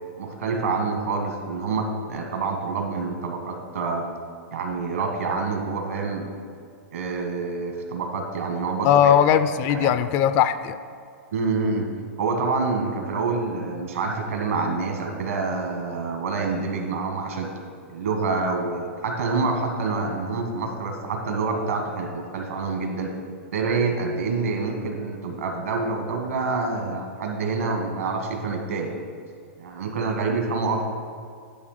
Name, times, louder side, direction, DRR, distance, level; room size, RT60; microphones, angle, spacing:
voice 1, 0.2-4.1 4.5-6.3 6.9-9.1 9.7-9.9 11.3-11.9 12.2-17.5 17.9-23.1 23.5-28.9 29.6-30.9, right 4 dB, 75° right, 3 dB, 1.6 m, -27 dB
voice 2, 8.8-10.8, left 9 dB, 40° left, 13 dB, 0.4 m, -19 dB
10.5 x 3.5 x 6.6 m, 2.3 s
hypercardioid pair, 120°, 8 cm